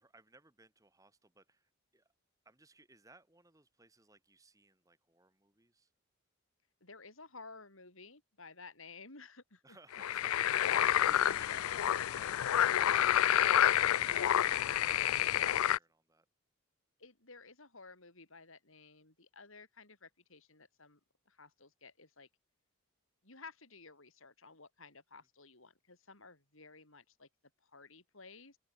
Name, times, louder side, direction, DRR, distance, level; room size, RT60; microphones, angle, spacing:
voice 1, 0.0-2.1 2.4-5.9 9.6-14.6 15.0-16.3, right 2 dB, 15° right, 2.3 m, -62 dB
voice 2, 6.8-10.0 11.2-11.7 15.5-15.6 17.0-21.0 21.3-22.3 23.2-27.3 27.6-28.6, left 4 dB, 70° left, 5.1 m, -55 dB
sound 1, 9.9-15.8, left 11 dB, 90° left, 0.4 m, -29 dB
open air
head